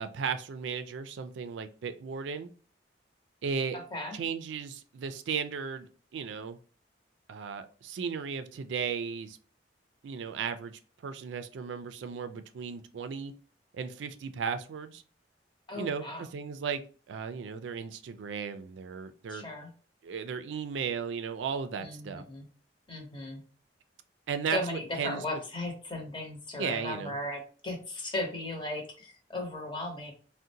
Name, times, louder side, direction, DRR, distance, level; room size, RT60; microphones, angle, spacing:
voice 1, 0.0-2.5 3.4-3.8 4.1-5.9 6.1-6.6 7.3-9.4 10.0-13.3 13.7-15.0 15.8-16.8 17.1-19.5 20.0-22.2 24.3-25.2 26.6-27.2, right 6 dB, 80° right, 0.3 m, -35 dB
voice 2, 3.7-4.2 15.7-16.2 19.3-19.7 21.8-22.5 22.9-23.4 24.5-30.1, left 1 dB, 25° left, 0.8 m, -36 dB
3.7 x 2.1 x 2.7 m
head